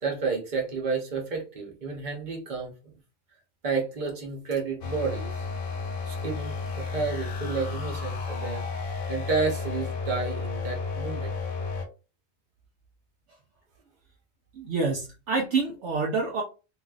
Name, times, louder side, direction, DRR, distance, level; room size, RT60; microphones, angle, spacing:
voice 1, 0.0-2.9 3.6-5.5 6.0-8.6 9.1-11.3, right 4 dB, 40° right, 0 dB, 1.0 m, -31 dB
sound 1, 4.8-11.9, left 4 dB, 90° left, 1.1 m, -32 dB
voice 2, 14.5-16.4, right 4 dB, 65° right, 0 dB, 0.8 m, -27 dB
3.1 x 2.7 x 2.4 m, 0.32 s
omnidirectional pair, 1.4 m